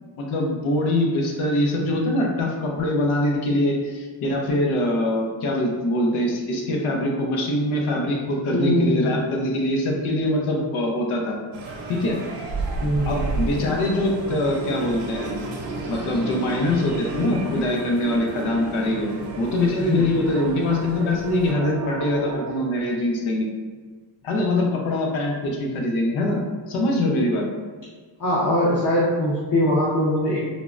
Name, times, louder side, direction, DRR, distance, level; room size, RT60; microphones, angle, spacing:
voice 1, 0.2-11.4 11.9-12.2 13.1-15.4 15.9-19.1 19.4-23.5 24.2-26.4 26.7-27.4, left 1 dB, 85° left, 0 dB, 0.7 m, -23 dB
voice 2, 8.5-9.4 12.8-13.1 19.9-20.0 28.2-30.4, equal, 40° left, -7 dB, 0.7 m, -22 dB
sound 1, 11.5-21.5, right 3 dB, 70° right, 0.7 m, -34 dB
sound 2, 13.0-22.6, right 2 dB, 35° right, 0.5 m, -35 dB
3.6 x 2.0 x 2.4 m, 1.4 s
cardioid pair, 90°, 48 cm